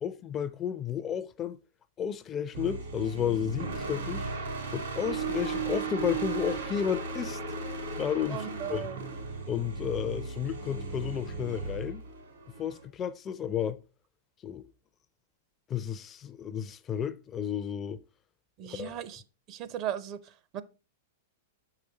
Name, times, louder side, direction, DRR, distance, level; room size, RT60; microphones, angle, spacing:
voice 1, 0.0-1.6 2.0-4.3 4.7-7.4 8.0-8.8 9.5-12.0 12.6-13.8 14.4-14.7 15.7-18.0 18.6-19.0, left 9 dB, 25° left, 0.4 m, -32 dB
sound 1, 2.5-12.8, right 4 dB, 80° right, 3.2 m, -36 dB
voice 2, 8.3-9.0 18.6-19.2 19.5-20.6, right 10 dB, 40° right, 0.6 m, -37 dB
6.9 x 4.9 x 4.0 m
hypercardioid pair, 115°, 0 cm